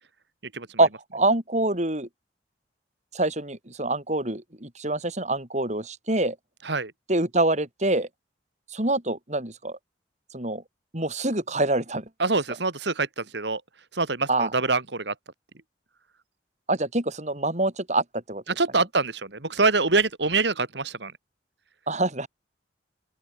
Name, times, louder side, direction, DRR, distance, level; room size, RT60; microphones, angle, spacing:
voice 1, 0.8-2.1 3.1-6.4 7.1-8.1 8.7-9.8 10.3-10.6 10.9-12.0 14.3-14.5 16.7-18.4 21.9-22.3, right 2 dB, 40° right, 4.4 m, -25 dB
voice 2, 12.2-13.6 13.9-15.1 18.6-21.1, right 3 dB, 70° right, 2.5 m, -25 dB
open air
head